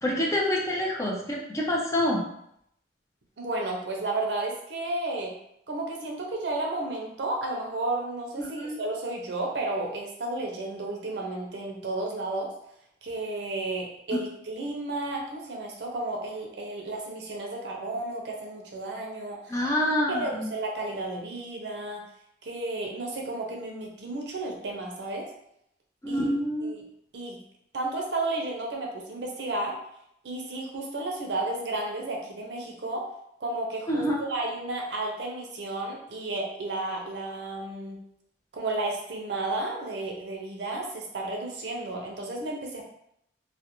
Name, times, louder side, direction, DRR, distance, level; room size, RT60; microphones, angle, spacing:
voice 1, 0.0-2.2 8.4-8.8 14.1-14.2 19.5-20.5 26.0-26.7 33.9-34.3, left 1 dB, 15° left, -2 dB, 0.5 m, -27 dB
voice 2, 3.4-5.3 5.7-12.5 13.0-19.6 20.1-22.0 22.4-25.3 26.1-26.3 26.7-26.8 27.1-27.4 27.7-29.8 30.2-33.1 33.4-38.0 38.5-42.8, right 2 dB, 65° right, 0 dB, 0.6 m, -32 dB
2.4 x 2.1 x 2.8 m, 0.75 s
head